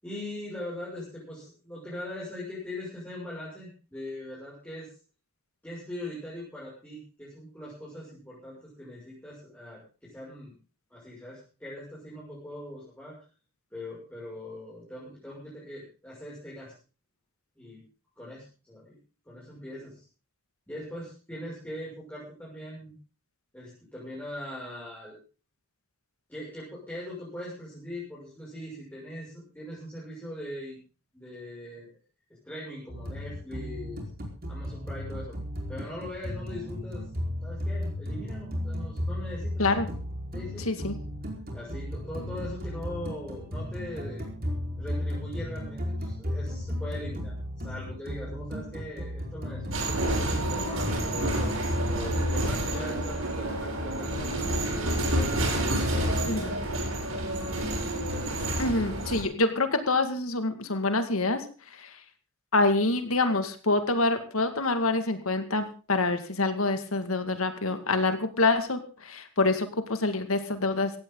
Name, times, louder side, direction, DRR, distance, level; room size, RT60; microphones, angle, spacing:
voice 1, 0.0-4.9 5.6-10.5 10.9-13.1 13.7-16.7 17.6-17.8 18.2-19.0 19.2-20.0 20.7-22.9 23.5-25.1 26.3-30.8 31.1-31.9 32.4-34.0 34.5-35.4 35.7-37.0 37.4-39.9 40.3-40.8 41.5-44.2 44.8-47.4 47.6-51.5 51.9-55.5 55.9-56.6 57.0-57.5, left 1 dB, 10° left, -7 dB, 6.6 m, -41 dB
sound 1, 32.9-52.6, left 1 dB, 45° right, 4.7 m, -35 dB
sound 2, 49.7-59.2, right 1 dB, 80° right, 7.9 m, -29 dB
voice 2, 58.6-61.4 61.7-61.9 62.5-70.9, left 2 dB, 90° left, 8 dB, 2.1 m, -26 dB
17.5 x 15.5 x 3.9 m, 0.36 s
head